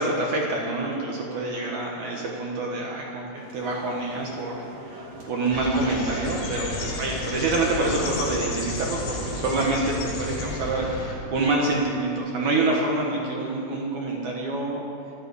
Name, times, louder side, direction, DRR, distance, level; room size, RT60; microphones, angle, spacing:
voice 1, 0.0-4.5 4.8-14.8, right 2 dB, 70° right, -1 dB, 1.8 m, -26 dB
sound 1, 3.3-11.0, right 1 dB, 40° right, 2.9 m, -41 dB
sound 2, 5.5-11.1, left 2 dB, 85° left, 5.9 m, -32 dB
16.5 x 13.5 x 4.8 m, 2.6 s
omnidirectional pair, 5.7 m